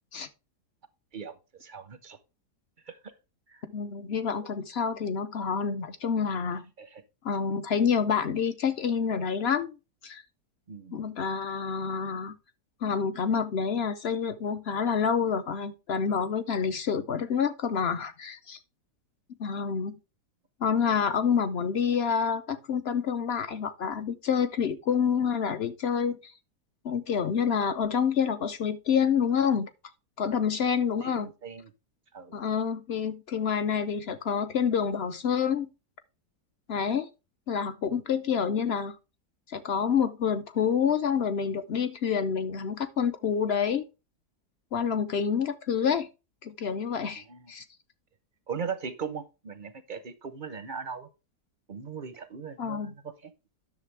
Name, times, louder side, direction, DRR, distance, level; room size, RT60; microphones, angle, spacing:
voice 1, 1.1-2.2 2.8-3.0 3.5-3.6 4.8-4.9 6.8-7.0 10.7-11.0 20.8-20.9 31.0-31.7 32.1-32.4 47.2-47.5 48.5-51.1 51.7-53.3, right 6 dB, 45° right, 0.6 m, -39 dB
voice 2, 3.7-6.7 7.2-9.8 10.0-10.2 10.9-12.3 12.8-18.6 19.4-20.0 20.6-26.3 26.8-29.7 30.2-31.3 32.3-35.7 36.7-37.1 37.5-39.0 39.5-43.8 44.7-46.1 46.4-47.6 52.6-52.9, left 7 dB, 60° left, 0.7 m, -28 dB
10.5 x 6.7 x 3.3 m
omnidirectional pair, 1.7 m